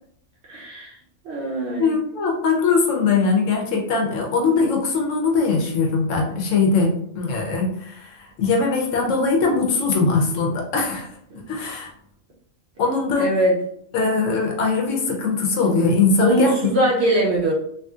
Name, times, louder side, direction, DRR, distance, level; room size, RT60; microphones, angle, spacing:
voice 1, 0.5-1.0 1.2-1.9 11.3-11.4 13.2-13.6 16.2-17.5, right 1 dB, 60° right, -3 dB, 0.8 m, -21 dB
voice 2, 1.8-11.1 11.5-11.9 12.8-13.3 13.9-16.5, left 4 dB, 65° left, 0 dB, 1.0 m, -21 dB
3.0 x 2.7 x 2.3 m, 0.71 s
omnidirectional pair, 1.5 m